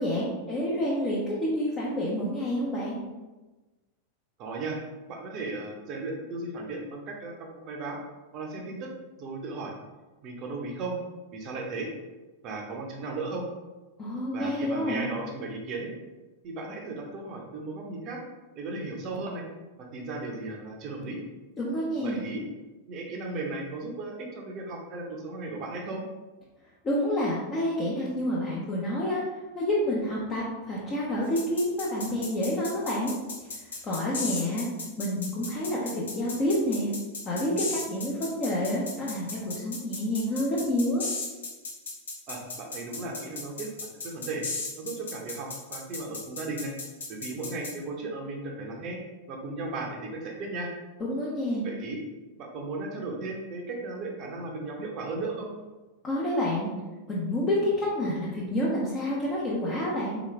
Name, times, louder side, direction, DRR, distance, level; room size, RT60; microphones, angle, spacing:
voice 1, 0.0-3.0 14.0-15.0 21.6-22.2 26.8-29.2 29.5-33.1 33.8-34.7 35.0-36.9 37.2-41.1 51.0-51.7 56.0-56.7 57.1-60.2, left 1 dB, 25° left, -6 dB, 0.8 m, -28 dB
voice 2, 4.4-4.8 5.1-8.0 8.3-8.9 9.2-9.7 10.2-11.0 11.3-11.9 12.4-13.4 14.3-15.9 16.4-18.2 18.5-19.4 19.9-21.2 22.0-22.4 22.9-26.0 42.3-43.7 44.0-44.5 44.8-46.7 47.1-49.0 49.3-50.7 51.6-52.0 52.4-55.5, right 3 dB, 40° right, 1 dB, 0.8 m, -36 dB
sound 1, 31.4-47.7, left 3 dB, 70° left, 1.1 m, -35 dB
3.7 x 3.0 x 3.2 m, 1.2 s
figure-of-eight pair, 90°, 0 cm